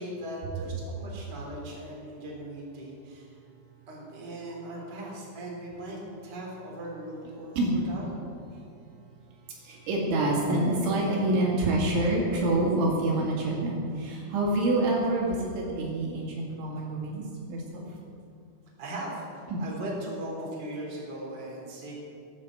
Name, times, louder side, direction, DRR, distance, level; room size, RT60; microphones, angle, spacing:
voice 1, 0.0-3.3 3.9-8.3 18.8-21.9, right 1 dB, 25° right, -3 dB, 3.7 m, -39 dB
voice 2, 9.7-17.2 17.5-17.8 19.5-19.6, right 2 dB, 70° right, -3 dB, 4.6 m, -27 dB
17.5 x 9.5 x 8.0 m, 2.5 s
omnidirectional pair, 5.8 m